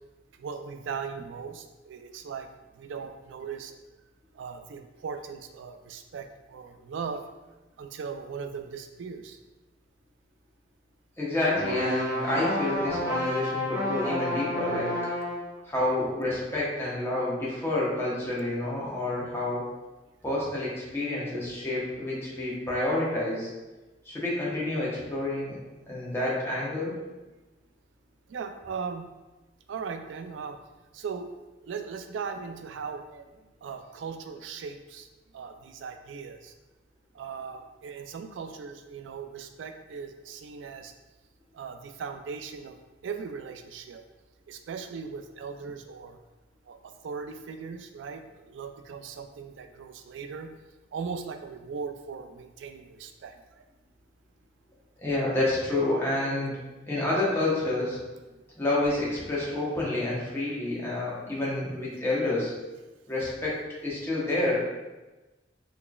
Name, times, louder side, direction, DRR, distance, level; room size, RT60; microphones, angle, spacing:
voice 1, 0.4-2.5 2.7-3.8 4.3-7.2 7.8-9.4 15.4-15.7 28.3-29.1 29.7-30.6 30.9-31.3 31.6-35.1 35.3-36.5 37.1-40.9 41.5-42.8 43.0-44.0 44.5-46.2 46.7-50.5 50.9-53.6, right 5 dB, 75° right, 7 dB, 0.3 m, -38 dB
voice 2, 11.2-15.0 15.7-19.7 20.2-23.5 24.0-25.6 25.9-27.0 55.0-56.5 56.9-58.0 58.6-62.5 63.1-64.6, left 2 dB, 15° left, -7 dB, 0.9 m, -29 dB
sound 1, 11.5-15.5, left 1 dB, 20° right, 1.0 m, -30 dB
4.0 x 3.2 x 2.3 m, 1.1 s
head